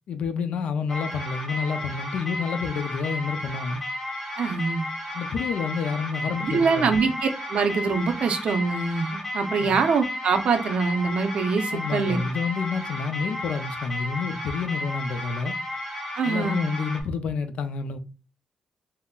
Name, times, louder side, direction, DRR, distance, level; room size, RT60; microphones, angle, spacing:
voice 1, 0.1-3.8 5.1-7.0 9.6-9.8 11.7-15.5 16.3-18.0, left 5 dB, 80° left, 0.4 m, -29 dB
sound 1, 0.9-17.0, left 1 dB, 20° left, 1.2 m, -33 dB
voice 2, 4.4-4.9 6.4-12.2 16.1-16.7, right 5 dB, 65° right, 0.5 m, -24 dB
3.6 x 2.0 x 2.2 m
wide cardioid pair, 145°, 2 cm